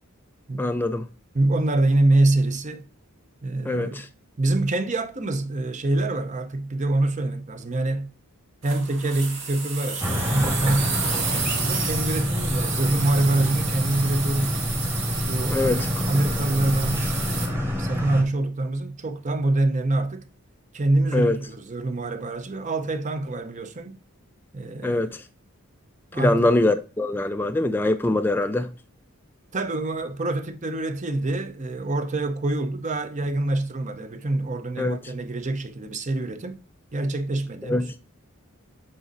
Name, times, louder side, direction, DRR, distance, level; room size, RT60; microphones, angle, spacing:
voice 1, 0.6-1.1 3.7-4.1 15.5-15.9 21.1-21.4 24.8-25.2 26.2-28.7 34.8-35.0 37.6-37.9, left 2 dB, 10° left, 0.3 m, -23 dB
voice 2, 1.3-2.9 3.4-4.1 4.4-8.1 8.6-14.6 15.3-20.3 20.7-24.0 24.5-25.2 26.1-26.5 29.5-36.6 36.9-37.9, right 2 dB, 35° right, 0.7 m, -25 dB
sound 1, 8.6-17.5, right 5 dB, 65° right, 2.1 m, -31 dB
sound 2, 10.0-18.2, left 1 dB, 10° right, 1.2 m, -27 dB
7.7 x 4.1 x 3.9 m
head